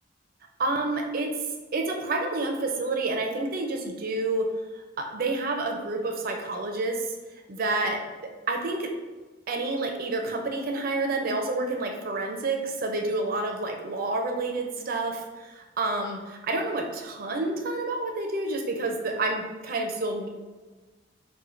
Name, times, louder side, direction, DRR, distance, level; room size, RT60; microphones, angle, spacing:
voice 1, 0.6-1.3 1.7-4.5 5.0-7.0 7.5-8.0 8.5-8.9 9.5-20.3, right 2 dB, 50° right, 3 dB, 0.5 m, -29 dB
4.3 x 2.2 x 2.5 m, 1.3 s
head